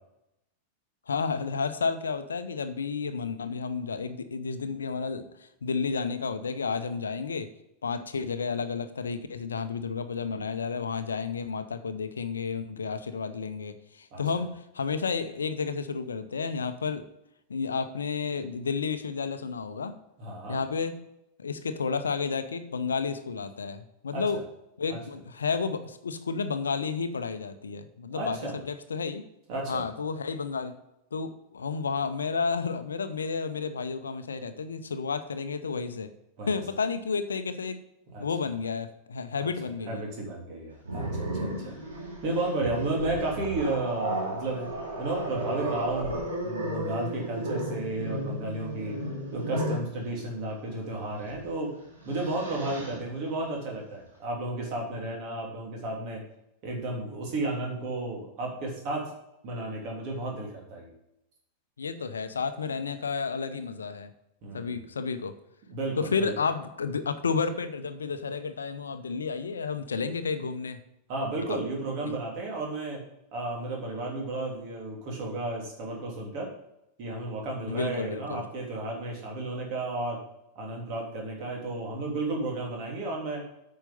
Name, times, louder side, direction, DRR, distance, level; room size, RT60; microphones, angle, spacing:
voice 1, 1.1-5.3 5.6-7.5 7.8-17.1 17.5-20.0 20.5-21.0 21.4-24.4 24.8-29.3 29.7-30.8 31.1-36.1 36.5-37.8 38.2-40.0 61.8-64.1 64.5-65.3 66.0-70.8 71.5-71.6 72.0-72.1 77.7-78.4, left 5 dB, 70° left, 10 dB, 0.7 m, -31 dB
voice 2, 20.2-20.6 24.1-24.2 24.9-25.0 28.1-28.5 29.5-29.8 36.4-36.5 38.1-38.2 39.4-39.5 39.9-41.8 42.2-44.7 45.0-49.0 49.3-51.8 52.0-56.2 56.6-59.1 59.4-60.9 64.4-64.9 65.7-66.3 71.1-73.0 73.3-76.5 77.0-80.2 80.5-83.4, right 2 dB, 45° right, -1 dB, 3.2 m, -33 dB
Growling, 40.8-49.9 51.2-51.4 51.8-53.0, right 1 dB, 70° right, 2.5 m, -34 dB
9.0 x 5.6 x 5.3 m, 0.83 s
figure-of-eight pair, 90°, 0 cm